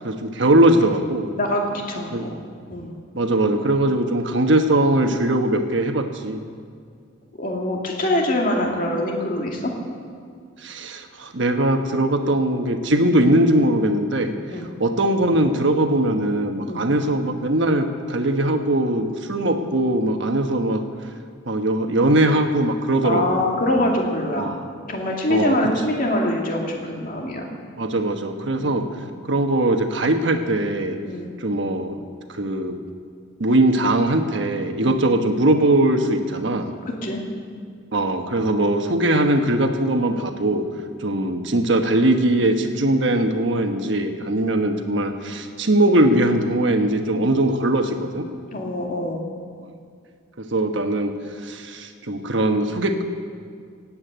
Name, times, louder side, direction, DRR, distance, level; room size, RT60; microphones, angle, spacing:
voice 1, 0.0-1.3 2.1-2.2 3.1-6.4 10.6-20.8 21.5-23.5 24.4-24.6 25.3-25.6 25.9-26.0 27.8-28.8 29.2-30.9 31.4-32.0 32.3-32.8 33.4-36.7 37.9-40.6 41.0-48.3 50.4-51.1 51.4-53.0, right 1 dB, 60° right, 6 dB, 1.2 m, -20 dB
voice 2, 1.3-2.3 2.7-2.9 7.4-9.7 14.5-14.7 16.6-16.9 23.0-24.5 24.9-27.5 28.6-28.8 31.0-31.2 34.8-35.0 36.9-37.2 48.5-49.2, left 1 dB, 40° left, 0 dB, 2.4 m, -24 dB
18.0 x 8.7 x 8.2 m, 2.2 s
head